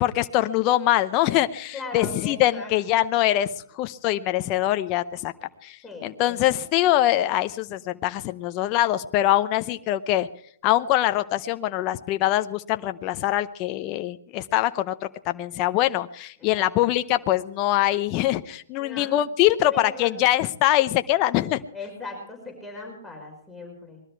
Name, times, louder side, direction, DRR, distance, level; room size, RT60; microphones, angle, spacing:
voice 1, 0.0-5.3 5.6-10.3 10.6-21.6, left 14 dB, 30° left, 10 dB, 0.8 m, -23 dB
voice 2, 1.7-2.7 5.8-6.4 16.4-16.7 18.8-19.2 19.6-20.2 21.7-24.0, left 3 dB, 5° left, -2 dB, 5.0 m, -39 dB
21.0 x 13.0 x 4.7 m, 0.62 s
hypercardioid pair, 140°, 0 cm